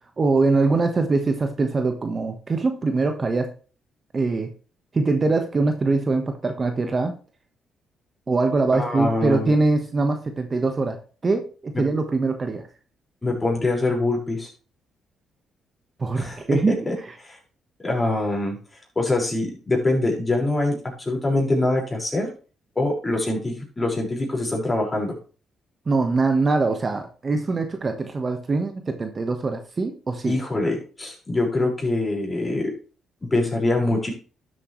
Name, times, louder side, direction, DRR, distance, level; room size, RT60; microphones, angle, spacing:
voice 1, 0.2-3.5 4.1-4.5 4.9-7.1 8.3-12.7 16.0-17.1 25.9-30.3, right 3 dB, 35° right, 6 dB, 1.4 m, -23 dB
voice 2, 8.7-9.5 11.7-11.8 13.2-14.5 16.1-16.6 16.9-17.0 17.2-17.4 17.8-18.6 19.0-20.8 21.1-22.3 22.8-25.2 30.3-32.7 33.2-34.1, left 2 dB, 20° left, -1 dB, 5.5 m, -24 dB
12.0 x 7.9 x 3.3 m, 0.36 s
cardioid pair, 90°, 0 cm